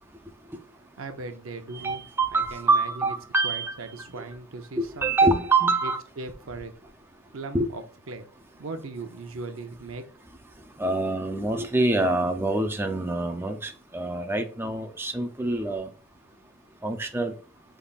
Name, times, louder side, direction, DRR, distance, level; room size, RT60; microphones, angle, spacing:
voice 1, 1.0-2.0 2.3-3.1 3.4-5.3 5.8-6.7 7.3-8.3 8.6-10.1, right 3 dB, 80° right, 7 dB, 0.7 m, -38 dB
voice 2, 1.7-3.7 4.8-6.0 7.5-7.7 10.8-15.9 16.8-17.3, right 2 dB, 10° right, 5 dB, 0.5 m, -25 dB
5.2 x 3.5 x 2.4 m, 0.39 s
head